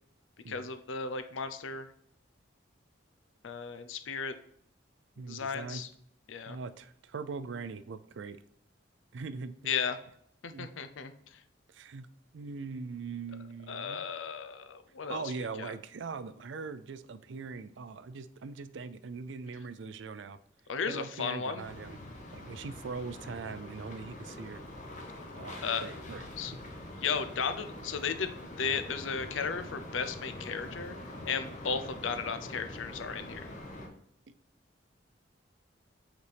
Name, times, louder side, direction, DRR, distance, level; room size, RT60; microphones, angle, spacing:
voice 1, 0.5-1.9 3.4-4.3 5.3-5.9 6.3-6.6 9.7-9.9 10.4-11.1 13.7-15.2 15.6-15.7 20.7-21.6 25.6-25.8 26.4-26.5 27.0-28.3 28.6-31.0 31.2-33.4, left 5 dB, 80° left, 10 dB, 0.6 m, -34 dB
voice 2, 5.2-5.8 6.5-8.4 9.1-9.5 10.5-10.7 11.7-12.1 12.3-14.1 15.1-20.4 20.9-22.0 22.3-24.6 25.3-26.3 31.7-31.8, right 4 dB, 70° right, 13 dB, 0.4 m, -41 dB
sound 1, 21.6-33.9, left 1 dB, 40° left, 1.0 m, -44 dB
8.0 x 4.1 x 3.4 m, 0.69 s
head